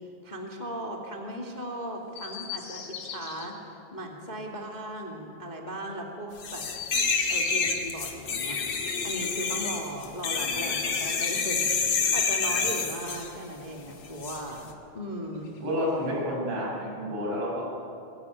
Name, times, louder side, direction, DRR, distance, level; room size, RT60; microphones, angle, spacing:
voice 1, 0.2-3.6 3.9-6.6 7.3-8.6 9.0-14.7 14.9-15.5, right 1 dB, 15° left, 1 dB, 1.4 m, -37 dB
Chirp tweet, 2.1-3.5 6.5-7.9 10.3-11.7 13.1-14.2 15.3-16.2, left 7 dB, 85° left, 4.9 m, -42 dB
sound 1, 6.4-13.3 14.2-14.4, left 5 dB, 45° left, 2.5 m, -28 dB
voice 2, 15.6-17.6, equal, 85° right, -4 dB, 10.0 m, -29 dB
23.0 x 21.5 x 9.8 m, 2.6 s
omnidirectional pair, 5.2 m